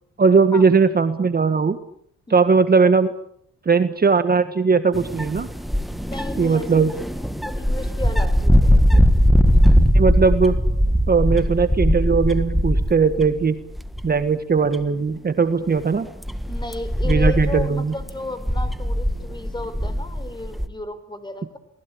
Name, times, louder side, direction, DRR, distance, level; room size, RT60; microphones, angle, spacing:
voice 1, 0.2-1.8 2.3-3.1 3.6-5.5 6.4-6.9 9.9-10.6 11.1-13.6 14.0-16.1 17.0-17.9, right 5 dB, 30° right, 10 dB, 1.6 m, -18 dB
sound 1, 4.9-13.4 13.7-14.2 14.7-14.8 15.7-20.7, equal, ahead, 1.7 m, -20 dB
voice 2, 6.1-9.1 16.5-21.6, left 1 dB, 15° left, 12 dB, 4.7 m, -34 dB
28.5 x 19.5 x 8.7 m, 0.69 s
cardioid pair, 90°, 30 cm